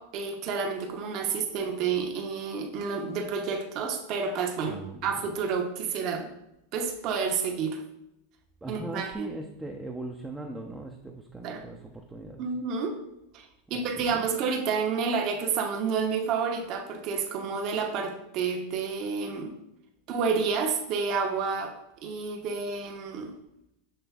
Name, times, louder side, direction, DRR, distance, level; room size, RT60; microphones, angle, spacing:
voice 1, 0.0-6.3 6.7-7.8 8.7-9.3 11.4-11.6 12.4-13.0 13.3-19.6 20.1-21.7 22.0-23.3, right 5 dB, 50° right, 2 dB, 0.8 m, -30 dB
voice 2, 4.6-5.3 8.6-12.4 13.7-14.3, right 2 dB, 10° right, 1 dB, 0.5 m, -40 dB
6.8 x 3.1 x 2.4 m, 0.84 s
hypercardioid pair, 115°, 0 cm